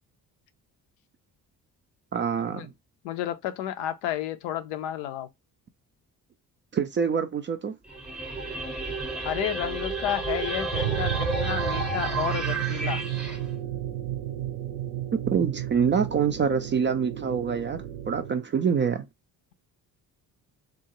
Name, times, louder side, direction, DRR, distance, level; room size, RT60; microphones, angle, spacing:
voice 1, 2.1-2.7 6.7-7.7 15.1-19.1, right 6 dB, 25° right, 0.3 m, -26 dB
voice 2, 3.0-5.3 9.2-13.0, left 11 dB, 70° left, 0.6 m, -31 dB
sound 1, 7.9-13.4, right 3 dB, ahead, 0.7 m, -31 dB
sound 2, 10.7-18.3, right 12 dB, 65° right, 0.6 m, -32 dB
3.5 x 2.1 x 2.9 m
hypercardioid pair, 45°, 48 cm